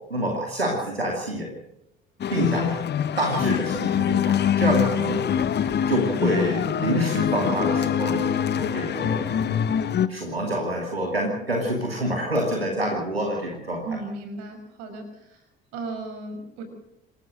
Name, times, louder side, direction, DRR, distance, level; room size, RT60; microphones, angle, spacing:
voice 1, 0.1-1.5 2.3-2.8 3.2-9.6 10.1-14.0, right 1 dB, 85° right, 0 dB, 2.7 m, -27 dB
sound 1, 2.2-10.1, left 9 dB, 35° left, 1.2 m, -24 dB
voice 2, 13.8-15.4 15.7-16.6, right 3 dB, 60° right, 7 dB, 6.2 m, -35 dB
27.5 x 14.5 x 6.5 m, 0.84 s
figure-of-eight pair, 55°, 29 cm